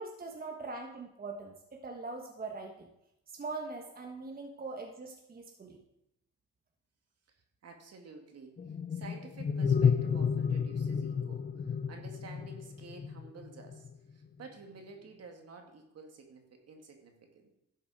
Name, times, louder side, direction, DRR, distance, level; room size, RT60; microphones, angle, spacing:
voice 1, 0.0-2.9 3.3-5.8, right 3 dB, 30° right, 2 dB, 1.4 m, -42 dB
voice 2, 7.3-17.5, right 4 dB, 55° right, 3 dB, 2.2 m, -51 dB
sound 1, 8.6-13.9, left 6 dB, 30° left, 0.5 m, -31 dB
12.0 x 7.2 x 4.8 m, 0.83 s
cardioid pair, 90°, 30 cm